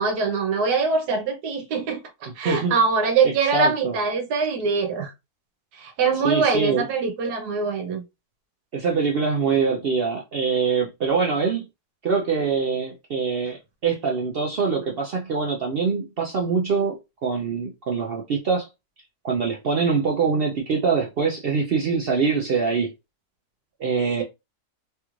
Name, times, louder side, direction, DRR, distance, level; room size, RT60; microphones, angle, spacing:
voice 1, 0.0-5.1 5.7-8.0, right 4 dB, 85° right, 1.4 m, -23 dB
voice 2, 2.3-2.8 3.2-3.9 6.2-6.9 8.7-11.7 12.0-18.7 19.2-22.9 23.8-24.2, right 5 dB, 70° right, 0.5 m, -24 dB
3.3 x 2.4 x 3.0 m
omnidirectional pair, 1.7 m